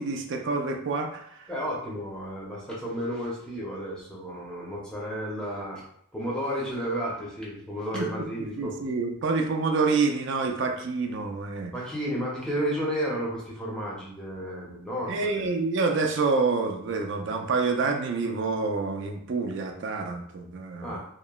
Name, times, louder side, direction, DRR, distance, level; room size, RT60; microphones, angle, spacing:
voice 1, 0.0-1.5 7.9-11.7 15.1-21.0, right 4 dB, 55° right, 3 dB, 0.3 m, -27 dB
voice 2, 1.5-5.8 6.1-8.7 11.7-15.6 20.8-21.0, equal, 5° left, -5 dB, 0.6 m, -32 dB
2.9 x 2.0 x 2.3 m, 0.69 s
head